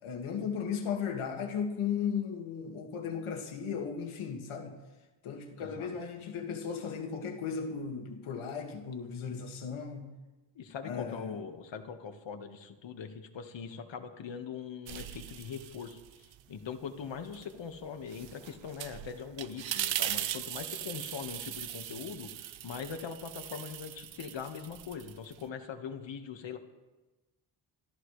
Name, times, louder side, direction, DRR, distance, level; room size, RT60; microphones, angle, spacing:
voice 1, 0.0-4.8 5.2-10.1 10.8-11.4, left 6 dB, 90° left, 2.1 m, -36 dB
voice 2, 5.6-5.9 10.5-26.6, left 6 dB, 65° left, 1.7 m, -42 dB
sound 1, 14.9-16.4 16.8-25.5, right 12 dB, 70° right, 0.8 m, -39 dB
25.0 x 14.0 x 3.3 m
cardioid pair, 90°, 47 cm